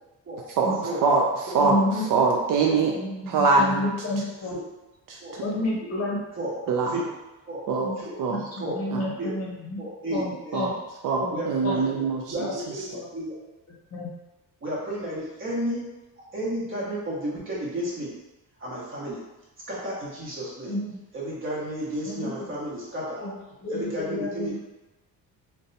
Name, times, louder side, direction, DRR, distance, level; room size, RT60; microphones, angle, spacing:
voice 1, 0.6-1.8 2.1-2.9 3.3-3.8 5.1-5.2 6.7-7.0 7.7-7.9 8.2-8.4 8.9-9.1 10.5-10.7 11.0-12.5, right 4 dB, 60° right, 0 dB, 0.5 m, -23 dB
voice 2, 1.6-2.1 2.7-4.6 5.4-6.2 7.8-7.9 8.3-9.8 10.1-10.7 11.2-11.4 11.6-11.8 12.4-12.5 12.9-13.0 13.9-14.1 20.7-21.0 22.0-22.5 23.2-24.6, left 1 dB, 40° left, -3 dB, 0.8 m, -30 dB
voice 3, 9.8-10.6 11.3-13.4 14.6-15.9 16.3-18.1 18.6-19.2 19.7-20.7 21.1-23.3 23.7-24.6, right 1 dB, 35° right, -6 dB, 1.1 m, -32 dB
2.6 x 2.2 x 3.9 m, 1.0 s
cardioid pair, 145°, 37 cm